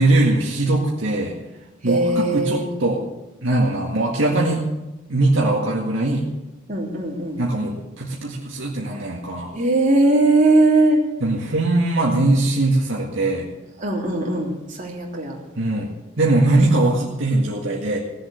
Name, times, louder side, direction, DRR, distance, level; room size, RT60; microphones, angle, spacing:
voice 1, 0.0-1.3 1.8-3.1 3.4-4.7 5.1-6.3 7.4-9.5 11.2-13.5 15.6-18.0, right 2 dB, 65° right, -3 dB, 1.9 m, -21 dB
voice 2, 1.8-2.7 6.7-7.4 9.5-11.0 13.8-14.5 14.8-15.4, right 2 dB, 40° right, -2 dB, 3.4 m, -19 dB
18.0 x 7.6 x 7.9 m, 1.0 s
head